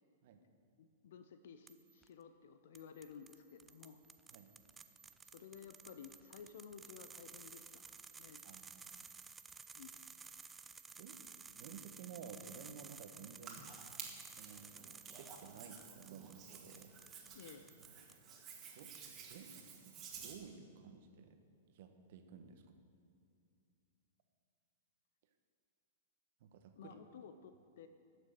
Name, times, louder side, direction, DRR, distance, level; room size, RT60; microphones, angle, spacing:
voice 1, 0.8-4.0 5.2-8.4 9.8-10.0 17.3-17.7 26.8-27.9, left 7 dB, 65° left, 9 dB, 0.6 m, -55 dB
sound 1, 1.7-2.1 2.7-18.2 18.6-19.4, right 5 dB, 15° right, 0.5 m, -56 dB
voice 2, 8.4-9.1 11.0-11.2 11.5-13.6 14.4-16.9 18.7-18.9 19.3-21.4 21.7-22.8 26.4-27.0, right 6 dB, 60° right, 6 dB, 1.2 m, -54 dB
Hands, 13.4-20.3, right 6 dB, 30° right, 2.1 m, -53 dB
12.5 x 6.7 x 6.6 m, 2.4 s
hypercardioid pair, 115°, 0 cm